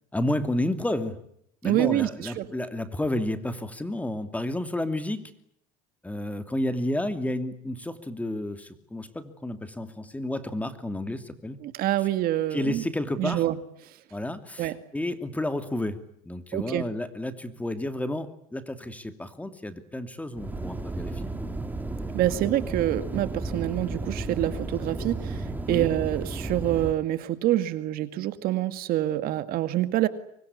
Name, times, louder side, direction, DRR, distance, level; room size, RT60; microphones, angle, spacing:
voice 1, 0.1-1.2 1.6-5.3 6.0-11.6 12.5-13.4 14.1-21.3 22.2-22.4 25.7-25.9, left 1 dB, 10° left, 9 dB, 2.7 m, -31 dB
voice 2, 1.6-2.5 11.6-12.8 13.2-13.6 14.6-14.8 16.5-16.8 22.1-30.1, right 13 dB, 60° right, 11 dB, 2.2 m, -26 dB
sound 1, 20.4-26.9, right 2 dB, 10° right, 3.7 m, -33 dB
25.5 x 21.5 x 9.9 m, 0.70 s
supercardioid pair, 105°, 17 cm